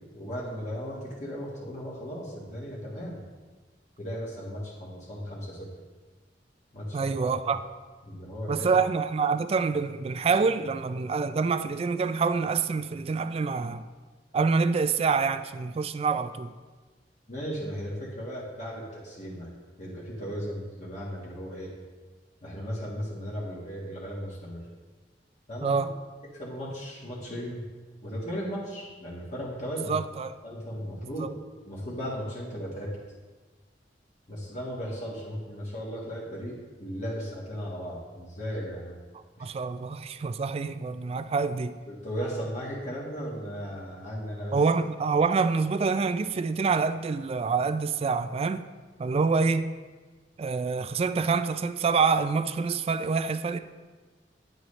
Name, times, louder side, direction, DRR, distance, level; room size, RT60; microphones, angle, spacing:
voice 1, 0.1-3.2 4.0-5.7 6.7-7.5 8.0-8.7 17.3-19.5 19.8-21.7 22.4-24.6 25.5-25.8 26.3-27.6 28.0-30.0 30.4-31.3 31.6-33.0 34.3-39.0 39.4-39.5 41.9-44.6, equal, 40° left, 1.6 m, -36 dB
voice 2, 6.9-7.6 8.5-13.8 14.3-16.5 25.6-25.9 29.9-30.3 31.2-31.3 39.4-41.8 44.5-48.7 49.0-49.7 50.4-53.6, right 4 dB, 35° right, 0.3 m, -26 dB
9.8 x 7.6 x 3.2 m
head